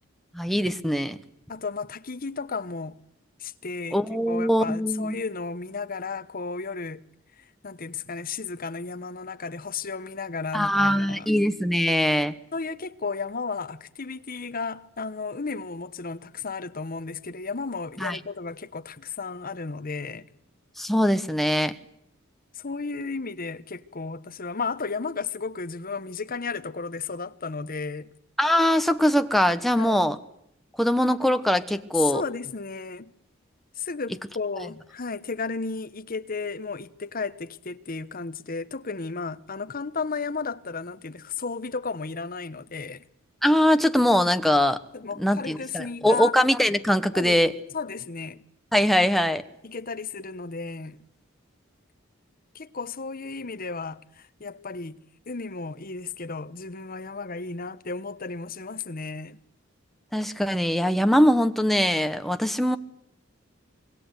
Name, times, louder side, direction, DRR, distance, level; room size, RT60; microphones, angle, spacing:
voice 1, 0.3-1.2 3.9-5.2 10.5-12.3 18.0-18.2 20.8-21.7 28.4-30.2 30.8-32.2 43.4-44.8 45.2-47.5 48.7-49.4 60.1-62.8, equal, ahead, 1.1 m, -22 dB
voice 2, 1.5-3.0 3.4-4.0 4.3-7.0 7.6-11.3 12.5-20.2 22.5-28.1 29.8-30.1 31.9-33.1 33.8-43.0 44.9-46.4 47.1-47.4 47.7-48.4 49.6-51.0 52.5-55.0 55.3-59.4, left 4 dB, 45° left, 1.1 m, -33 dB
26.0 x 22.0 x 8.1 m
head